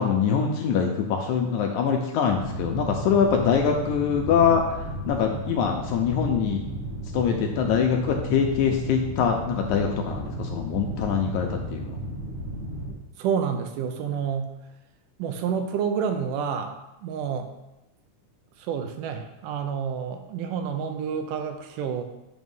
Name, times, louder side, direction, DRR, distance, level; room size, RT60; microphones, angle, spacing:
voice 1, 0.0-4.8 5.1-6.6 7.1-12.0, left 7 dB, 80° left, 2 dB, 1.8 m, -24 dB
sound 1, 2.3-12.9, right 1 dB, 60° right, 1.2 m, -34 dB
voice 2, 13.2-14.5 15.2-16.8 17.0-17.5 18.7-22.0, right 7 dB, 85° right, 6 dB, 2.2 m, -29 dB
7.9 x 3.1 x 5.3 m, 0.96 s
omnidirectional pair, 3.8 m